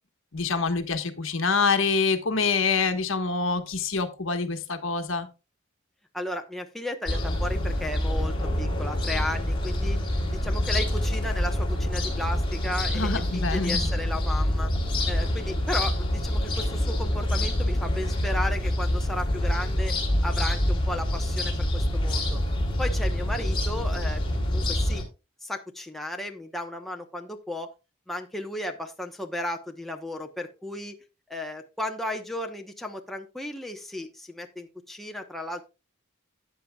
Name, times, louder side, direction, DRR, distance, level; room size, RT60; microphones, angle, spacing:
voice 1, 0.3-5.3 12.9-13.8, left 4 dB, 65° left, 7 dB, 1.4 m, -26 dB
voice 2, 6.1-10.0 10.4-14.7 15.1-19.9 20.2-22.4 22.8-24.2 24.5-25.0 25.4-27.7 28.1-31.0 31.3-35.7, left 1 dB, ahead, 3 dB, 1.0 m, -34 dB
sound 1, 7.1-25.0, left 1 dB, 25° left, 3.3 m, -26 dB
13.5 x 8.9 x 2.3 m, 0.28 s
head